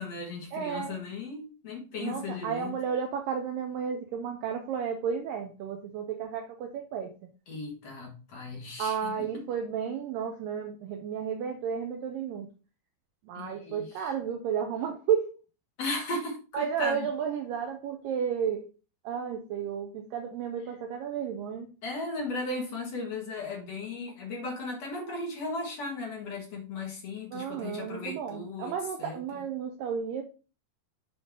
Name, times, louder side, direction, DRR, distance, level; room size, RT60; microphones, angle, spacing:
voice 1, 0.0-2.7 7.5-9.4 13.3-14.1 15.8-17.1 21.8-29.5, left 2 dB, 50° left, 2.2 m, -36 dB
voice 2, 0.5-1.0 2.0-7.1 8.8-12.5 13.3-15.4 16.5-18.7 19.1-21.7 27.3-30.2, right 7 dB, 90° right, 2.0 m, -32 dB
7.8 x 5.3 x 3.7 m
omnidirectional pair, 4.9 m